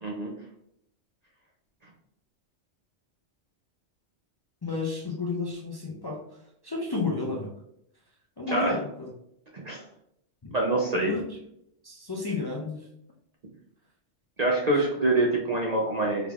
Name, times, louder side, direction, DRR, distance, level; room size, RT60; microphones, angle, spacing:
voice 1, 0.0-0.3 8.5-8.7 9.6-9.8 10.5-11.1 14.4-16.3, right 2 dB, 45° right, -2 dB, 0.6 m, -25 dB
voice 2, 4.6-6.2 6.6-7.5 8.4-9.1 10.4-10.5 11.0-11.2 11.8-12.8, left 3 dB, 40° left, -2 dB, 0.3 m, -31 dB
4.7 x 3.4 x 2.4 m, 0.75 s
omnidirectional pair, 1.2 m